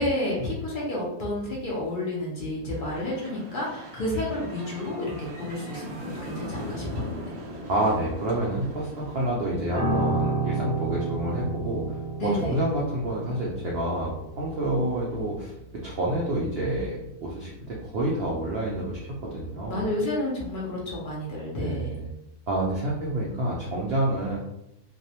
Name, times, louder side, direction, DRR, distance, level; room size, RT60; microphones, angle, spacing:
voice 1, 0.0-7.3 12.2-12.6 19.7-22.0, left 1 dB, 85° left, -4 dB, 0.4 m, -30 dB
sound 1, 2.7-9.3, equal, 65° right, 0.9 m, -39 dB
voice 2, 7.7-12.0 12.2-15.5 15.8-19.9 21.6-22.1 22.5-24.4, right 1 dB, 90° right, -4 dB, 0.5 m, -28 dB
Piano, 9.7-19.1 19.4-19.7, right 3 dB, 45° right, 0.7 m, -32 dB
2.5 x 2.0 x 2.7 m, 0.82 s
omnidirectional pair, 1.6 m